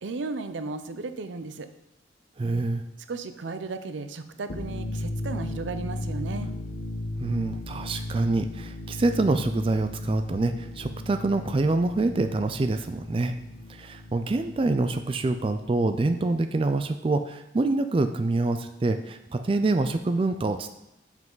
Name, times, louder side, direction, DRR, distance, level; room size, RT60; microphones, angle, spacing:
voice 1, 0.0-1.7 3.1-6.5, right 3 dB, 90° right, 10 dB, 0.6 m, -35 dB
voice 2, 2.4-2.8 7.2-13.3 13.7-20.7, right 2 dB, 30° right, 8 dB, 0.3 m, -26 dB
sound 1, 4.4-15.9, left 1 dB, 70° left, 1.0 m, -36 dB
7.3 x 5.7 x 3.9 m, 0.87 s
head